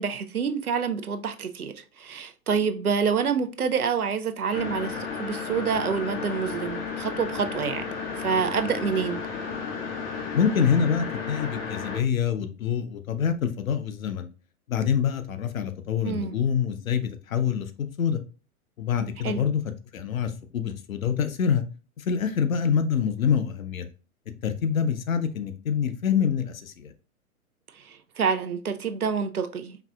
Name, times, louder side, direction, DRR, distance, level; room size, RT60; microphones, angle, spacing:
voice 1, 0.0-9.2 16.0-16.3 19.2-19.5 27.8-29.8, right 6 dB, 90° right, 0.6 m, -27 dB
sound 1, 4.5-12.0, left 5 dB, 20° left, 0.4 m, -33 dB
voice 2, 10.3-14.3 14.7-18.2 18.8-19.6 19.9-21.6 22.0-23.9 24.4-26.9, left 7 dB, 70° left, 0.7 m, -26 dB
4.7 x 2.7 x 2.3 m
figure-of-eight pair, 105°, 43 cm